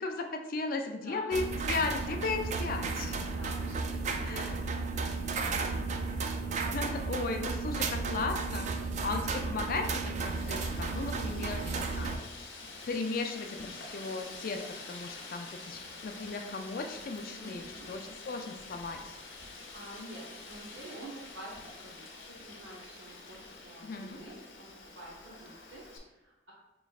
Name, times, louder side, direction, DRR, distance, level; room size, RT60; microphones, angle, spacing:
voice 1, 0.0-3.2 4.2-4.6 6.5-8.7 9.0-12.3 12.9-19.2 23.8-24.2, left 3 dB, 50° left, 4 dB, 0.4 m, -36 dB
voice 2, 0.9-1.4 3.2-4.8 17.4-17.9 19.7-24.7 24.9-26.5, right 1 dB, 70° right, -4 dB, 0.8 m, -49 dB
sound 1, 1.3-12.2, right 4 dB, 40° right, 0.3 m, -33 dB
Wind, 10.2-26.0, left 3 dB, 80° left, 0.8 m, -47 dB
5.2 x 3.0 x 2.4 m, 1.0 s
head